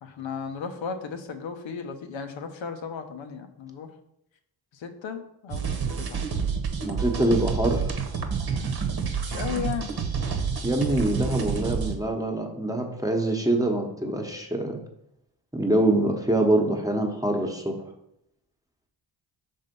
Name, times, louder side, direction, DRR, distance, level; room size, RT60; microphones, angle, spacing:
voice 1, 0.0-3.9 4.7-6.3 9.2-9.9, left 6 dB, 75° left, 7 dB, 0.9 m, -35 dB
sound 1, 5.5-12.0, right 6 dB, 50° right, 1.0 m, -28 dB
voice 2, 6.8-7.8 10.6-14.8 15.5-17.8, right 1 dB, 5° right, 1 dB, 1.1 m, -24 dB
5.6 x 3.6 x 5.3 m, 0.78 s
cardioid pair, 60°, 47 cm